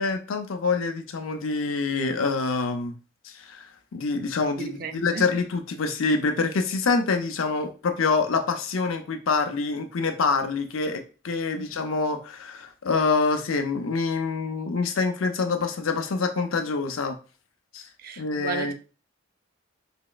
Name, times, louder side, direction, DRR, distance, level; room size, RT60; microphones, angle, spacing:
voice 1, 0.0-3.0 3.3-3.7 3.9-17.2 17.7-17.8 18.2-18.7, left 4 dB, 90° left, 0.6 m, -26 dB
voice 2, 4.6-5.3 11.5-11.7 18.0-18.7, right 5 dB, 45° right, 0.4 m, -34 dB
4.2 x 2.9 x 2.3 m
head